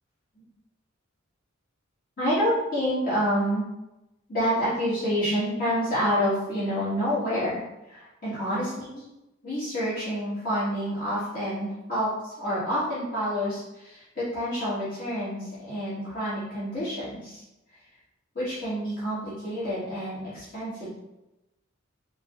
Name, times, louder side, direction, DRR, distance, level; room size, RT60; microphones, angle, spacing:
voice 1, 2.2-3.6 4.3-9.0 9.4-17.4 18.3-21.0, equal, 45° left, -11 dB, 1.5 m, -28 dB
4.6 x 2.1 x 2.4 m, 0.95 s
head